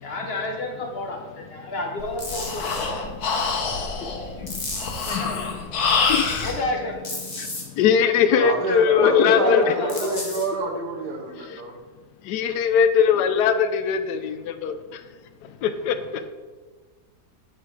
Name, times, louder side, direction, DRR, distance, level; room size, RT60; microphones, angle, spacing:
voice 1, 0.0-2.9 4.3-4.6 5.1-5.5 6.4-7.1 9.3-10.3, left 2 dB, 45° left, 2 dB, 1.1 m, -31 dB
Breathing, 2.0-6.6, left 4 dB, 70° left, 1.4 m, -26 dB
sound 1, 2.2-2.9 4.5-5.2 7.0-7.6 9.9-10.4, left 2 dB, 25° left, 1.2 m, -33 dB
voice 2, 4.4-4.7 5.1-6.3 7.4-9.7 12.2-14.8 15.6-16.3, left 7 dB, 90° left, 10 dB, 1.2 m, -21 dB
voice 3, 8.3-11.8, right 3 dB, 85° right, 2 dB, 1.7 m, -28 dB
7.6 x 4.9 x 4.6 m, 1.4 s
omnidirectional pair, 1.7 m